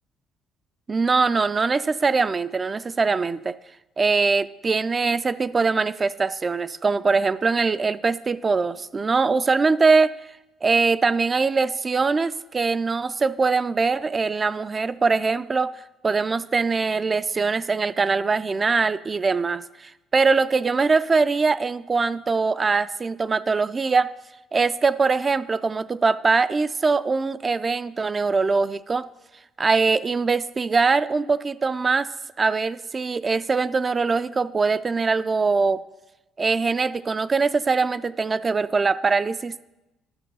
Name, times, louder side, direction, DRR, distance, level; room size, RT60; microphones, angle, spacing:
voice 1, 0.9-3.6 4.0-10.1 10.6-15.7 16.0-24.1 24.5-29.0 29.6-32.1 32.4-35.8 36.4-39.6, right 4 dB, 30° right, 14 dB, 0.3 m, -22 dB
10.5 x 6.7 x 5.4 m, 0.98 s
cardioid pair, 105°, 0 cm